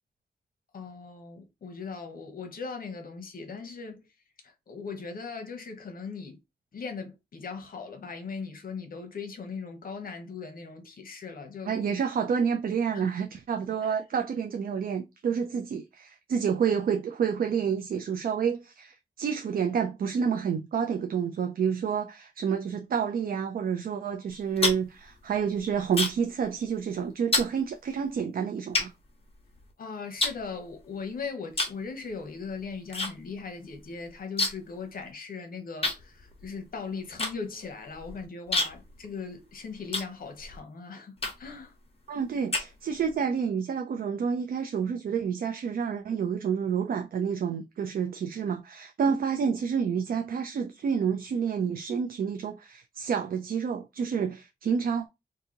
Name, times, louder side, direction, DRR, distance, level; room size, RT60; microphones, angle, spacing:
voice 1, 0.7-4.1 4.4-6.4 6.7-11.7 12.9-13.1 13.8-14.0 29.8-41.7 49.0-49.2, left 5 dB, 65° left, 0.8 m, -39 dB
voice 2, 11.6-28.9 42.1-55.1, right 7 dB, 65° right, 0.4 m, -29 dB
sound 1, 24.3-26.4 26.6-26.9 27.3-27.5 28.2-28.3 28.7-29.7 30.2-31.1 31.5-31.8 32.1-33.1 33.4-33.5 33.7-34.8 35.0-35.1 35.8-40.6 41.2-41.6 42.1-43.1, left 2 dB, 35° left, 1.0 m, -30 dB
2.8 x 2.6 x 3.7 m
wide cardioid pair, 150°, 16 cm